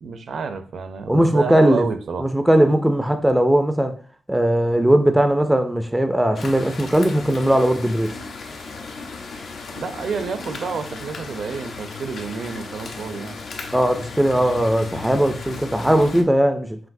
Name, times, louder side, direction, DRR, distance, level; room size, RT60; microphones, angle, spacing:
voice 1, 0.0-2.3 9.8-13.4, right 5 dB, 70° right, 0.5 m, -29 dB
voice 2, 1.1-1.8 2.2-4.0 4.3-8.1 13.7-16.8, right 1 dB, 5° right, 0.3 m, -18 dB
sound 1, 6.3-16.2, left 4 dB, 75° left, 0.7 m, -35 dB
5.8 x 2.6 x 2.6 m
wide cardioid pair, 130°, 0 cm